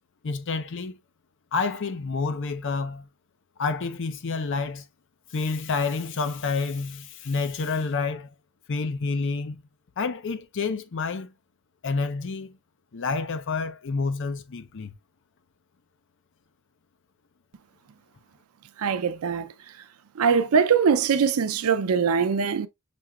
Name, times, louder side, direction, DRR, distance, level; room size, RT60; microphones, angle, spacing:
voice 1, 0.2-1.0 1.5-3.1 3.6-4.8 5.3-8.3 8.7-9.6 10.0-11.3 11.8-12.6 12.9-14.9, left 4 dB, 60° left, 0.6 m, -29 dB
voice 2, 18.8-19.5 20.2-22.7, right 6 dB, 80° right, 0.5 m, -22 dB
6.0 x 2.9 x 2.3 m
head